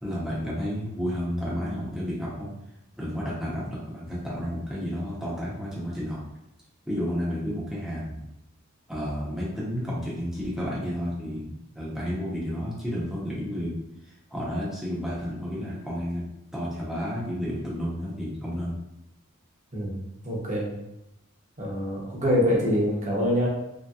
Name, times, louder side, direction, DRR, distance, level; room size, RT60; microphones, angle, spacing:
voice 1, 0.0-2.5 3.0-6.2 6.9-8.2 8.9-13.8 14.0-16.2 16.5-18.8, equal, ahead, -7 dB, 0.7 m, -31 dB
voice 2, 19.7-20.7 21.6-23.5, equal, 35° right, -4 dB, 0.8 m, -25 dB
3.0 x 2.8 x 2.3 m, 0.86 s
head